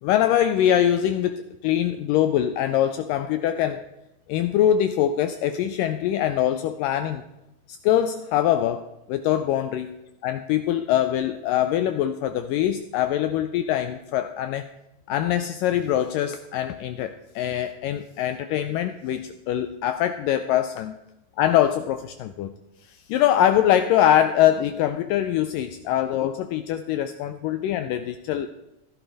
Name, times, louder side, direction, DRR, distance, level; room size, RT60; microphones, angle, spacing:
voice 1, 0.0-3.8 4.3-7.2 7.7-9.9 10.2-14.7 15.1-20.9 21.4-22.5 22.9-28.5, left 11 dB, 80° left, 9 dB, 2.0 m, -23 dB
15.0 x 11.5 x 4.0 m, 0.92 s
omnidirectional pair, 4.4 m